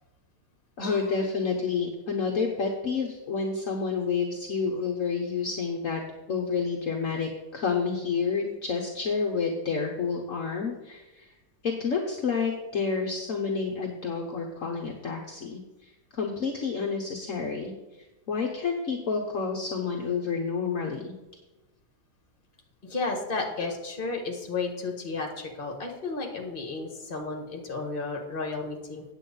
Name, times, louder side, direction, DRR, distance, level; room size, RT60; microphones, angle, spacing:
voice 1, 0.8-6.0 6.3-11.3 11.6-17.7 18.3-21.1, left 5 dB, 55° left, 1 dB, 1.4 m, -29 dB
voice 2, 22.8-29.0, left 3 dB, 30° left, 2 dB, 1.8 m, -33 dB
9.0 x 8.1 x 5.4 m, 1.1 s
omnidirectional pair, 1.8 m